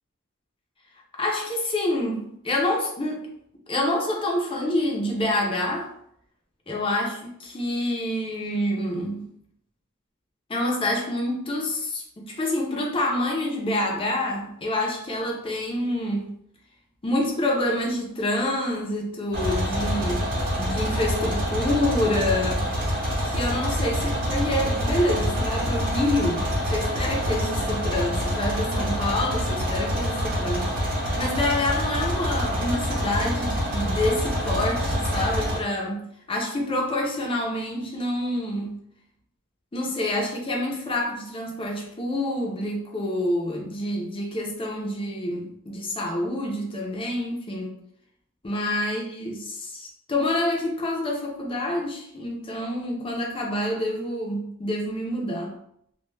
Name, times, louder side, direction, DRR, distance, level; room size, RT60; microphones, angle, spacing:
voice 1, 1.1-3.2 3.7-5.9 6.7-9.2 10.5-16.3 17.0-20.3 20.6-22.7 23.2-38.8 39.7-47.8 48.4-55.5, left 1 dB, 25° left, -1 dB, 0.5 m, -27 dB
sound 1, 19.3-35.6, equal, 40° right, 0.7 m, -26 dB
2.2 x 2.2 x 3.1 m, 0.71 s
head